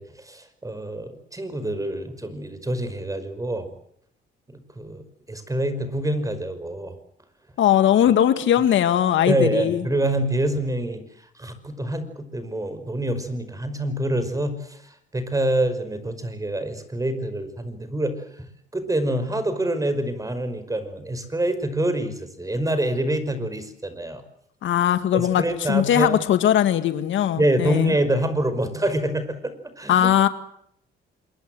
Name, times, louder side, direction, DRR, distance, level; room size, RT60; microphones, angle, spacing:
voice 1, 0.0-3.7 4.5-5.0 5.3-7.0 9.3-18.5 18.7-24.2 25.1-26.2 27.4-30.1, right 1 dB, 15° right, 11 dB, 5.3 m, -26 dB
voice 2, 7.6-9.8 24.6-25.4 25.7-27.9 29.9-30.3, left 10 dB, 75° left, 11 dB, 2.0 m, -19 dB
27.0 x 22.0 x 7.8 m, 0.71 s
cardioid pair, 90°, 20 cm